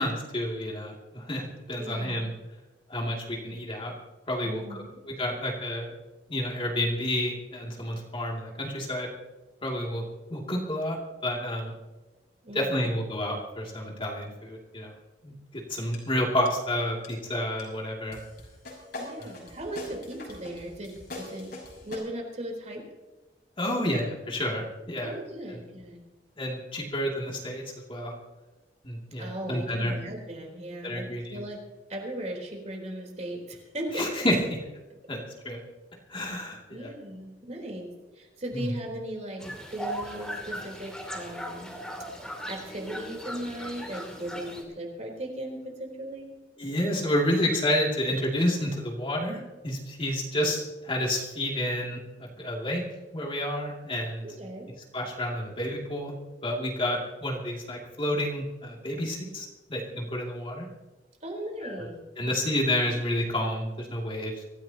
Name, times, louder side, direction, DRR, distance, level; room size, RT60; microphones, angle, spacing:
voice 1, 0.0-2.3 2.9-3.9 4.3-5.9 6.3-9.1 9.6-10.0 10.3-11.0 11.2-11.7 12.5-14.9 15.2-18.2 19.2-19.3 23.6-25.1 25.5-25.6 26.4-27.6 27.9-28.1 28.8-29.9 30.8-31.4 33.9-34.4 35.1-35.6 36.1-36.9 38.5-38.7 46.6-52.0 52.4-52.8 53.1-54.2 54.9-56.1 56.4-60.7 61.6-61.9 62.2-64.3, left 1 dB, 30° left, -1 dB, 2.6 m, -30 dB
voice 2, 1.8-2.3 4.4-5.0 12.4-12.9 19.0-21.5 21.8-22.8 25.0-26.0 29.2-31.6 31.9-34.3 36.7-39.4 39.7-41.7 42.5-46.3 54.2-54.7 61.2-62.0, right 1 dB, 40° right, 1 dB, 3.9 m, -37 dB
sound 1, 15.9-16.0 16.4-16.7 17.0-17.1 17.6-17.7 18.1-22.0, left 2 dB, 65° left, 6.0 m, -42 dB
sound 2, 39.4-44.6, equal, 5° left, 2.8 m, -38 dB
24.5 x 15.0 x 2.9 m, 1.2 s
head